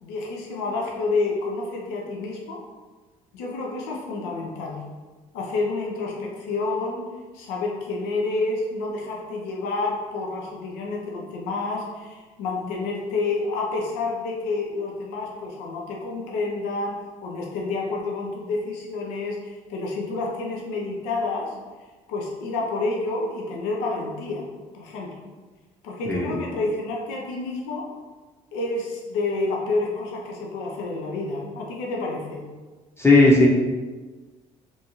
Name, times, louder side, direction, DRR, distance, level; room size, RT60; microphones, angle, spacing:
voice 1, 0.0-2.6 3.3-4.8 5.3-7.0 7.3-21.6 22.1-24.5 24.7-25.2 25.8-27.9 28.5-32.4, left 3 dB, 80° left, -1 dB, 0.5 m, -29 dB
voice 2, 33.0-33.5, left 2 dB, 15° left, -3 dB, 0.7 m, -15 dB
2.7 x 2.3 x 2.9 m, 1.3 s
hypercardioid pair, 60°, 17 cm